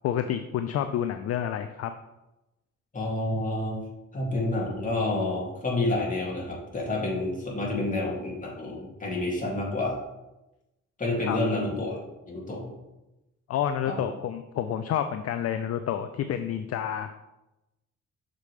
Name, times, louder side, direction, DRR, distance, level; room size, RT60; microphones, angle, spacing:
voice 1, 0.0-1.9 11.2-11.4 13.5-17.2, left 9 dB, 55° left, 9 dB, 0.4 m, -29 dB
voice 2, 2.9-3.8 4.1-10.0 11.0-12.0 12.3-12.7 13.9-14.1, left 2 dB, 25° left, -3 dB, 2.3 m, -29 dB
6.6 x 5.2 x 3.2 m, 0.97 s
cardioid pair, 90°, 30 cm